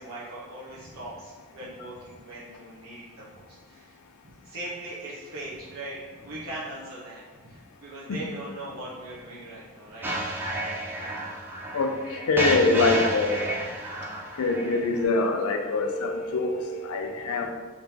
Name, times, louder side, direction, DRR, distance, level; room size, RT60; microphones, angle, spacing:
voice 1, 0.0-4.0 4.2-10.1 12.7-13.0 17.4-17.5, right 1 dB, 75° right, -9 dB, 1.0 m, -40 dB
sound 1, 10.0-15.0, right 1 dB, 10° right, 0.4 m, -31 dB
voice 2, 11.7-13.4 14.4-17.5, left 3 dB, 85° left, 4 dB, 0.4 m, -24 dB
4.0 x 3.7 x 2.8 m, 1.4 s
head